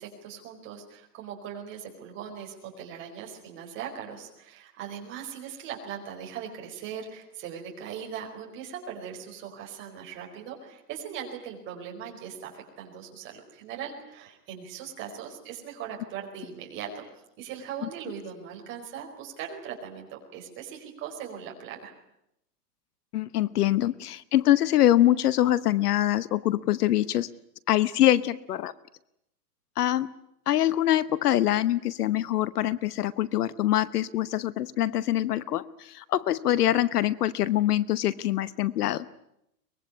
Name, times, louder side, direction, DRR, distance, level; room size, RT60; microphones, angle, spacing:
voice 1, 0.0-17.0 17.4-21.9, right 8 dB, 25° right, 1 dB, 4.7 m, -40 dB
voice 2, 23.1-27.3 27.7-28.7 29.8-30.1 30.5-39.1, left 13 dB, 65° left, 17 dB, 1.1 m, -24 dB
23.5 x 21.0 x 9.7 m, 0.80 s
supercardioid pair, 170°, 49 cm